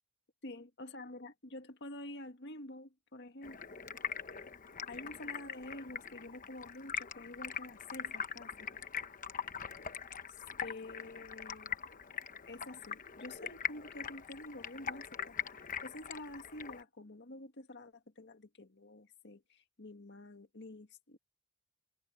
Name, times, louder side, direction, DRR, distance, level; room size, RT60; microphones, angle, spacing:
voice 1, 0.4-3.6 4.9-8.7 10.3-12.0 12.5-21.2, left 1 dB, 55° left, 1.9 m, -48 dB
Stream, 3.4-16.8, left 7 dB, 40° left, 1.0 m, -42 dB
head